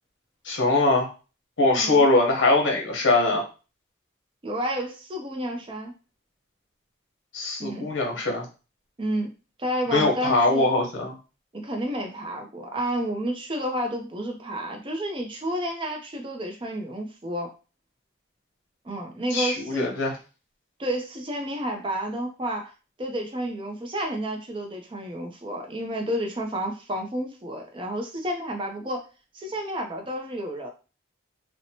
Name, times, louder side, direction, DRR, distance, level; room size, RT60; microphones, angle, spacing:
voice 1, 0.4-1.1 1.6-3.4 7.3-8.4 9.9-11.1 19.3-20.1, left 2 dB, 70° left, 0 dB, 0.9 m, -22 dB
voice 2, 1.7-2.1 4.4-5.9 7.6-7.9 9.0-9.3 9.6-10.7 11.5-17.5 18.8-19.9 20.8-22.7 23.0-29.1 29.3-30.7, right 1 dB, 25° right, 3 dB, 0.5 m, -30 dB
2.8 x 2.1 x 2.8 m, 0.33 s
head